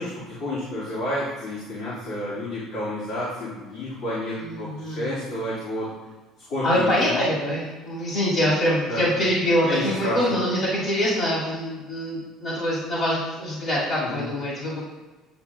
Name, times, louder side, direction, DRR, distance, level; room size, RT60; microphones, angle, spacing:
voice 1, 0.0-5.9 6.5-7.2 8.9-9.1 9.7-10.4 14.0-14.2, left 1 dB, 70° left, -10 dB, 2.1 m, -30 dB
voice 2, 4.4-5.2 6.6-14.8, equal, 40° left, -7 dB, 1.9 m, -24 dB
8.7 x 5.3 x 2.3 m, 1.2 s
cardioid pair, 140°, 0 cm